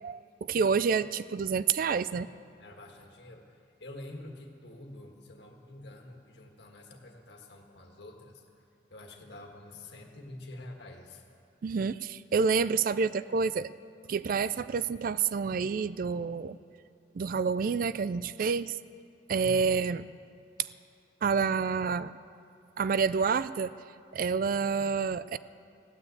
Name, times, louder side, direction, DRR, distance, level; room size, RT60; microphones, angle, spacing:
voice 1, 0.0-2.3 11.6-13.7 14.1-16.6 17.1-18.8 19.3-20.0 21.2-22.1 22.8-23.7 24.1-25.4, right 5 dB, 50° right, 16 dB, 0.3 m, -28 dB
voice 2, 2.6-8.4 8.9-11.2 19.3-19.8, left 1 dB, 65° left, 2 dB, 1.7 m, -47 dB
16.0 x 9.6 x 8.2 m, 2.4 s
head